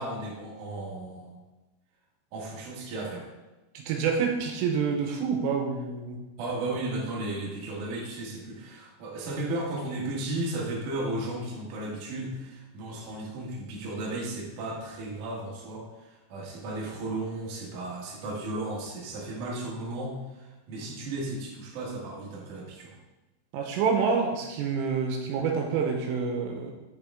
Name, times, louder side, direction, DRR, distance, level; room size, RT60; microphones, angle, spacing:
voice 1, 0.0-1.4 2.3-3.3 6.4-23.0, right 2 dB, 55° right, -4 dB, 2.3 m, -35 dB
voice 2, 3.7-6.2 23.5-26.7, right 5 dB, 80° right, 2 dB, 3.4 m, -27 dB
8.1 x 6.6 x 3.6 m, 1.1 s
omnidirectional pair, 6.0 m